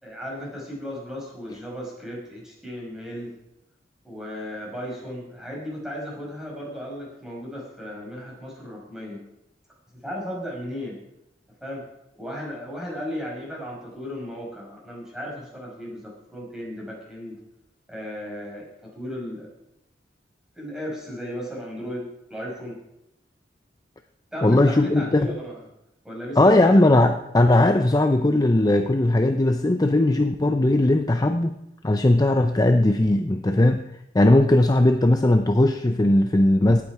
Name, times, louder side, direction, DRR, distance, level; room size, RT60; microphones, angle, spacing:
voice 1, 0.0-3.4 4.0-9.2 9.9-11.0 11.6-11.9 12.2-17.4 17.9-19.5 20.5-22.8 24.3-25.6 26.0-26.7, equal, 5° right, -4 dB, 5.4 m, -35 dB
voice 2, 24.4-25.3 26.4-31.5 31.8-33.9 34.1-36.8, left 1 dB, 20° left, 6 dB, 0.6 m, -18 dB
18.0 x 8.6 x 4.8 m, 0.84 s
head